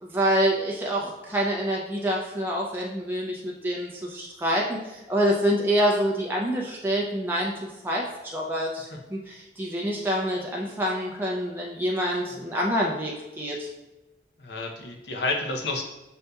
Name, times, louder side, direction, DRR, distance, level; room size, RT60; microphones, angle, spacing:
voice 1, 0.0-13.7, equal, 10° right, -3 dB, 0.4 m, -27 dB
voice 2, 14.4-15.8, left 3 dB, 60° left, 2 dB, 0.6 m, -30 dB
6.5 x 2.7 x 2.2 m, 1.0 s
head